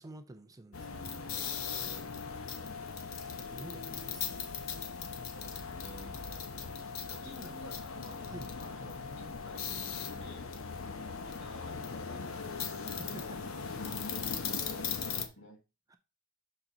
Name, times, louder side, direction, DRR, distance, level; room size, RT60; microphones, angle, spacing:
voice 1, 0.0-1.1 2.6-2.8 3.2-4.9 6.7-7.6 8.3-8.5 13.0-13.4 15.9-16.0, right 1 dB, 15° right, 0.5 m, -50 dB
sound 1, 0.7-15.3, left 6 dB, 90° left, 0.9 m, -39 dB
voice 2, 1.3-2.2 5.3-6.1 7.1-8.2 8.6-10.5 11.2-13.4 13.9-15.6, left 1 dB, 65° left, 1.9 m, -52 dB
5.8 x 4.2 x 3.9 m
head